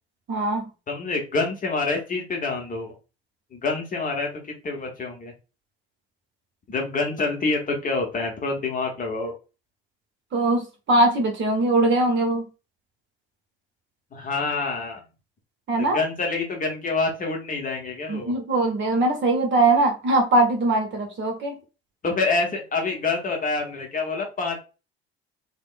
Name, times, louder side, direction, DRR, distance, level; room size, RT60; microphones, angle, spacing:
voice 1, 0.3-0.7 10.3-12.5 15.7-16.0 18.1-21.6, right 2 dB, 35° right, 2 dB, 0.9 m, -21 dB
voice 2, 0.9-2.9 3.5-5.3 6.7-9.3 14.1-15.0 15.8-18.3 22.0-24.6, left 3 dB, 25° left, 2 dB, 0.8 m, -27 dB
3.4 x 2.1 x 2.4 m, 0.31 s
figure-of-eight pair, 55°, 31 cm